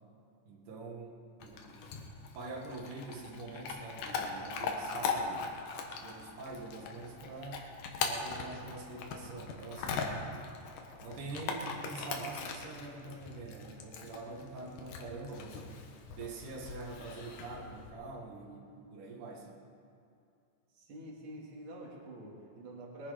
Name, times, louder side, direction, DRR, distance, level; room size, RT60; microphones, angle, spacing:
voice 1, 0.5-1.8 2.3-5.6 6.0-7.7 8.0-10.1 11.0-15.7 16.1-19.6, right 3 dB, 70° right, 2 dB, 2.9 m, -45 dB
Chewing mastication / Dog, 1.4-17.9, left 5 dB, 75° left, 2.8 m, -40 dB
voice 2, 20.7-23.1, right 1 dB, 40° right, -3 dB, 3.0 m, -47 dB
21.5 x 10.5 x 5.0 m, 2.5 s
omnidirectional pair, 3.9 m